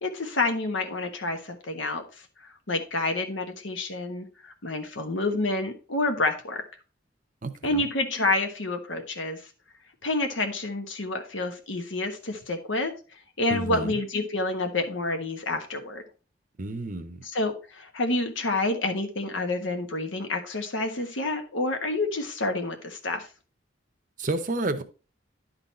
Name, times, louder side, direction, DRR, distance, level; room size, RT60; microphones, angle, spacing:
voice 1, 0.0-2.0 2.4-6.6 7.6-9.4 10.0-12.9 13.4-16.0 17.2-23.3, left 2 dB, 90° left, 1.4 m, -28 dB
voice 2, 7.4-7.8 13.5-14.0 16.6-17.2 24.2-24.8, right 2 dB, 45° right, 0.8 m, -30 dB
11.0 x 4.0 x 4.3 m
head